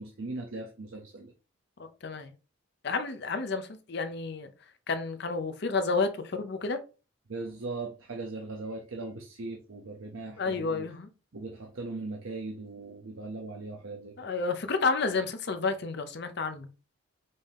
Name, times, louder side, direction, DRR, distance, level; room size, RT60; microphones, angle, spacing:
voice 1, 0.0-1.3 7.3-10.9 11.3-14.3, right 3 dB, 75° right, 0.7 m, -39 dB
voice 2, 2.0-2.3 2.8-4.5 4.9-6.8 10.4-11.1 14.2-16.7, left 4 dB, 50° left, 0.6 m, -30 dB
5.3 x 2.7 x 3.4 m
head